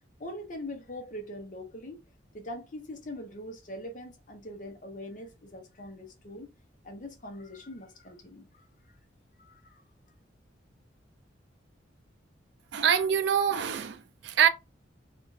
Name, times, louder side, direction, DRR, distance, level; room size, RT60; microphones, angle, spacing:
voice 1, 0.2-2.0 2.3-6.5 6.8-8.6 9.4-9.8, left 1 dB, 40° left, 0.7 m, -42 dB
voice 2, 12.7-14.5, right 8 dB, 65° right, 0.3 m, -25 dB
2.4 x 2.4 x 3.1 m
head